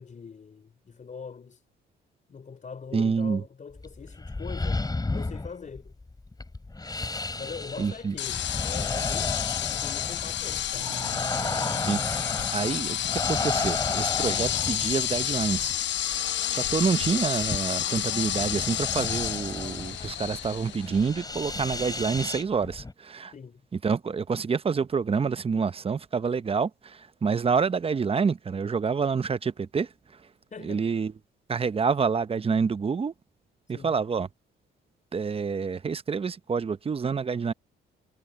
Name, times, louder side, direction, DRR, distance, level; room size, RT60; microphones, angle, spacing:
voice 1, 0.0-1.6 2.3-6.0 7.4-11.0 23.3-23.7 30.5-30.8 33.7-34.0, left 5 dB, 40° left, 4.0 m, -42 dB
voice 2, 2.9-3.4 7.8-8.1 11.9-15.7 16.0-23.3 23.8-29.9 30.6-31.1 31.5-33.1 33.7-34.3 35.1-37.5, right 5 dB, 30° right, 0.8 m, -28 dB
sound 1, 3.7-22.9, left 2 dB, 20° left, 7.3 m, -34 dB
sound 2, 8.2-22.1, left 12 dB, 65° left, 0.7 m, -30 dB
sound 3, 10.8-15.7, right 7 dB, 45° right, 2.3 m, -46 dB
cardioid pair, 90°, 20 cm